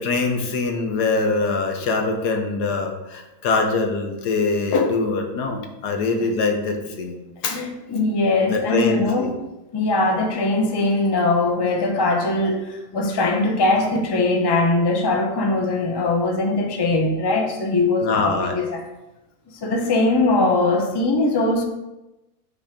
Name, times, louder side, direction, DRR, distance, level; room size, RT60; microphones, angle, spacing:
voice 1, 0.0-7.2 7.4-7.6 8.4-9.4 18.0-18.6, left 3 dB, 90° left, 4 dB, 1.5 m, -23 dB
voice 2, 7.5-9.4 9.7-18.8 19.6-21.6, left 2 dB, 30° left, 3 dB, 0.5 m, -21 dB
6.0 x 4.1 x 5.0 m, 0.97 s
omnidirectional pair, 1.7 m